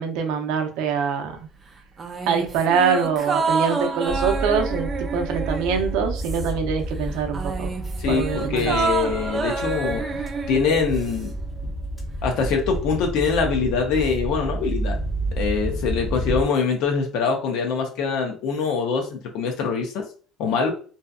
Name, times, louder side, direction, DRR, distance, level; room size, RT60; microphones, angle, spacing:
voice 1, 0.0-1.4 2.3-7.7 8.1-8.8, right 6 dB, 80° right, 5 dB, 0.5 m, -24 dB
sound 1, 2.0-6.7 7.0-11.3 11.6-11.7, right 4 dB, 30° right, 0.4 m, -28 dB
sound 2, 4.1-16.5, right 1 dB, 25° left, 0.8 m, -30 dB
voice 2, 8.0-10.0 10.5-11.3 12.2-15.0 15.4-20.1 20.4-20.7, left 5 dB, 70° left, 3 dB, 0.5 m, -24 dB
2.6 x 2.4 x 2.3 m, 0.41 s
cardioid pair, 130°, 0 cm